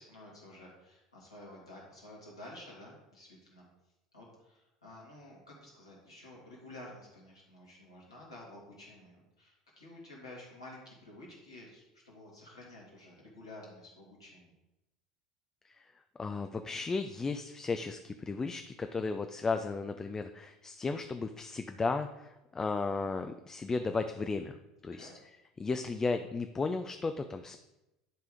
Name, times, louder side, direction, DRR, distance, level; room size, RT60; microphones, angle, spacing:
voice 1, 0.0-3.7 4.1-14.5 24.8-25.1, left 1 dB, 80° left, -4 dB, 2.1 m, -51 dB
voice 2, 16.2-24.5 24.8-25.1 25.6-27.6, left 4 dB, 20° left, 7 dB, 0.4 m, -34 dB
10.0 x 3.4 x 5.0 m, 0.96 s
figure-of-eight pair, 70°, 3 cm